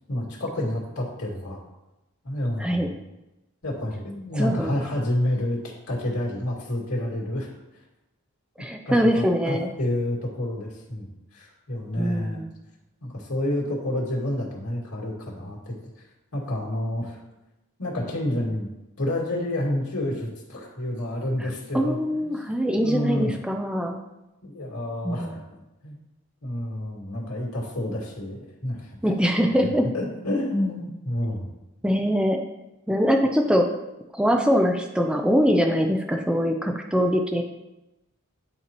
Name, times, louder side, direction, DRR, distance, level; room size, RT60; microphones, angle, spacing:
voice 1, 0.1-1.6 2.2-3.0 3.6-5.6 5.9-7.5 8.9-12.4 13.0-15.7 16.3-17.2 17.8-18.7 19.0-22.3 22.8-23.3 24.4-25.4 25.8-26.0 26.4-29.2 29.6-31.5, left 1 dB, 90° left, -3 dB, 2.2 m, -29 dB
voice 2, 4.3-4.7 8.6-9.7 12.0-12.5 21.4-24.0 25.0-25.4 29.0-29.9 31.8-32.4 32.9-33.7 34.1-37.4, equal, 5° right, 3 dB, 0.4 m, -23 dB
11.0 x 4.5 x 3.0 m, 0.97 s
head